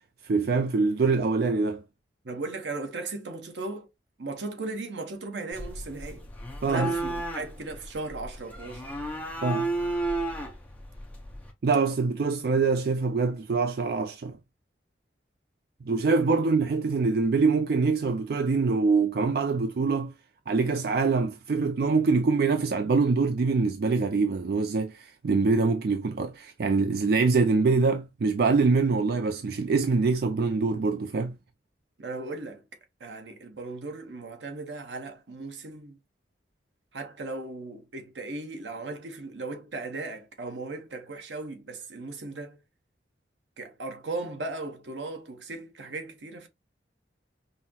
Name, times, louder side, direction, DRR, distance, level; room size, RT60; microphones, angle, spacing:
voice 1, 0.2-1.8 6.6-6.9 9.4-9.7 11.6-14.4 15.9-20.1 20.5-31.4, right 4 dB, 55° right, 0.4 m, -24 dB
voice 2, 2.2-3.9 4.2-6.3 6.7-8.8 16.2-16.4 32.0-32.6 33.0-36.0 36.9-42.6 43.6-46.5, right 3 dB, 80° right, 0.9 m, -37 dB
sound 1, 5.5-11.5, right 2 dB, 10° left, 0.7 m, -33 dB
5.5 x 2.0 x 2.8 m
head